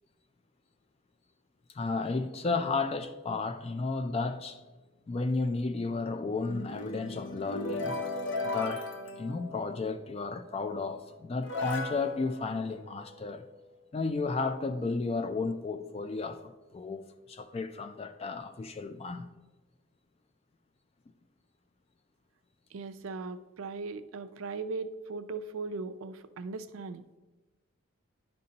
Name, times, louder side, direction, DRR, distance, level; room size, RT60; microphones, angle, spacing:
voice 1, 1.7-4.6 5.1-8.0 8.4-8.9 9.2-13.5 13.9-17.0 17.3-19.3, left 3 dB, 30° left, 0.3 m, -33 dB
sound 1, 6.3-10.1 10.9-11.0 11.4-13.4, left 2 dB, 60° left, 0.6 m, -37 dB
voice 2, 22.7-27.0, right 4 dB, 75° right, 0.4 m, -38 dB
10.5 x 5.2 x 2.8 m
head